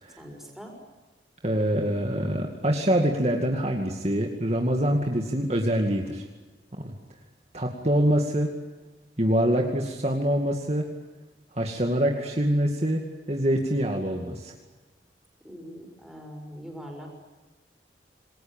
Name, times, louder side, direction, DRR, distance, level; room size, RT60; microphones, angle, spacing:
voice 1, 0.2-0.8 15.4-17.1, equal, ahead, 1 dB, 6.3 m, -42 dB
voice 2, 1.4-6.2 6.8-6.9 7.5-8.5 9.2-10.9 11.5-14.5, equal, 35° right, 2 dB, 2.3 m, -25 dB
27.5 x 20.5 x 9.0 m, 1.2 s
head